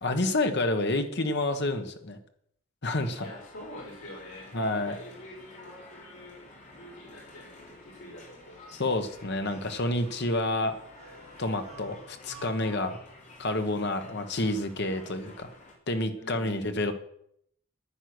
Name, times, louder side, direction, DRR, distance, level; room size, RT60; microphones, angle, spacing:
voice 1, 0.0-2.2 2.8-3.3 4.5-5.0 8.7-10.7 11.4-13.0 13.4-15.5 15.9-16.9, left 2 dB, 55° left, 7 dB, 1.3 m, -29 dB
sound 1, 3.0-15.7, left 2 dB, 35° left, 2.8 m, -51 dB
voice 2, 3.2-6.5 6.7-8.8 16.1-16.7, left 1 dB, 75° left, -2 dB, 4.9 m, -46 dB
sound 2, 8.4-13.6, right 2 dB, 30° right, 4.6 m, -53 dB
10.0 x 9.9 x 6.2 m, 0.69 s
head